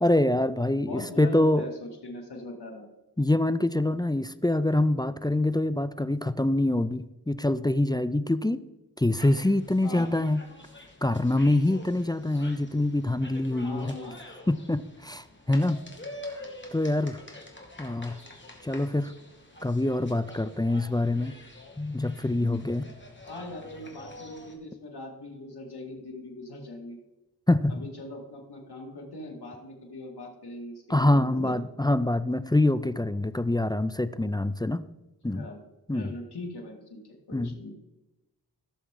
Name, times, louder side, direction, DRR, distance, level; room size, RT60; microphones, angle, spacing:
voice 1, 0.0-1.6 3.2-8.6 9.0-10.4 11.0-13.9 14.5-15.8 16.3-16.4 16.7-17.2 17.8-18.2 18.6-19.1 19.6-21.3 21.8-22.9 27.5-27.8 30.9-34.8 35.2-35.5 35.9-36.1 37.3-37.5, left 1 dB, 10° left, 13 dB, 0.4 m, -25 dB
voice 2, 0.9-2.9 9.8-10.1 13.6-14.2 23.3-27.0 27.7-31.5 35.3-35.6 35.9-37.0 37.3-37.7, left 2 dB, 80° left, 0 dB, 2.4 m, -40 dB
sound 1, 9.1-24.6, left 1 dB, 30° left, 2.2 m, -46 dB
15.5 x 7.0 x 3.8 m, 1.0 s
wide cardioid pair, 70°, 39 cm